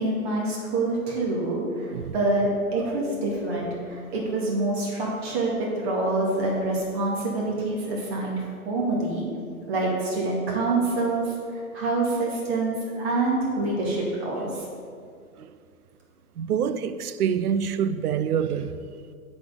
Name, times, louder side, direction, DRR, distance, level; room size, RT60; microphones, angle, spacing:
voice 1, 0.0-9.3 9.7-14.7, right 2 dB, 45° right, 2.1 m, -26 dB
voice 2, 16.4-18.8, right 8 dB, 85° right, 0.6 m, -26 dB
8.3 x 4.3 x 6.8 m
hypercardioid pair, 140°, 44 cm